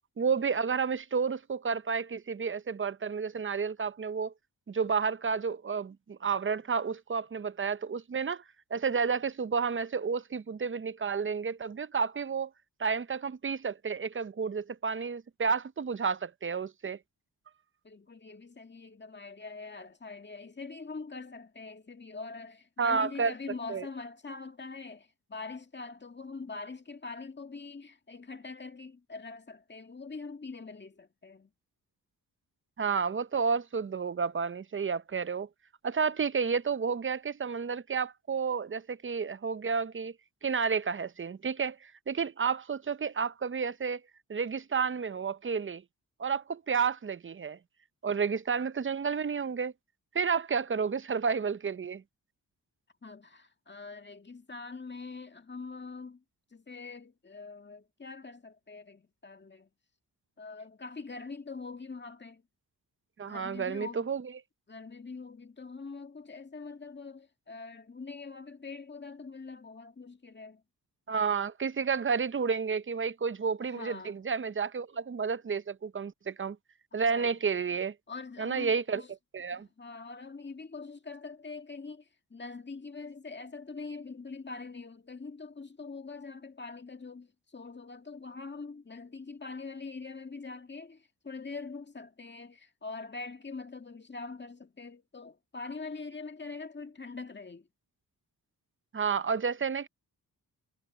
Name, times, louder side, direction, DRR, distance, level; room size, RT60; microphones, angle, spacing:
voice 1, 0.2-4.3 4.7-8.4 8.7-12.5 12.8-17.0 22.8-23.3 23.7-23.9 32.8-35.5 35.8-40.1 40.4-44.0 44.3-45.8 46.2-47.6 48.0-49.7 50.1-52.0 63.2-64.3 71.1-76.6 76.9-77.9 78.4-79.0 79.3-79.7 98.9-99.9, right 5 dB, 30° right, 0.6 m, -31 dB
voice 2, 17.8-31.5 53.0-56.2 56.5-59.7 60.4-62.4 63.2-64.1 64.7-70.6 73.6-74.2 76.9-77.3 78.1-79.1 79.5-97.7, left 4 dB, 25° left, 1.9 m, -43 dB
cardioid pair, 75°, 39 cm